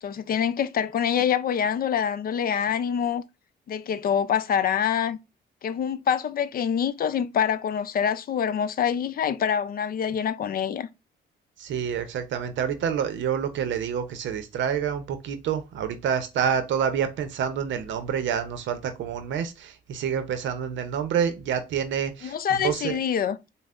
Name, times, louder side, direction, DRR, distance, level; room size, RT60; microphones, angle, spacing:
voice 1, 0.0-3.2 3.7-5.2 5.6-10.9 22.2-23.4, left 8 dB, 50° left, 0.4 m, -25 dB
voice 2, 11.6-22.4 22.6-23.0, right 8 dB, 70° right, 0.6 m, -28 dB
5.3 x 2.0 x 2.4 m
cardioid pair, 90°, 20 cm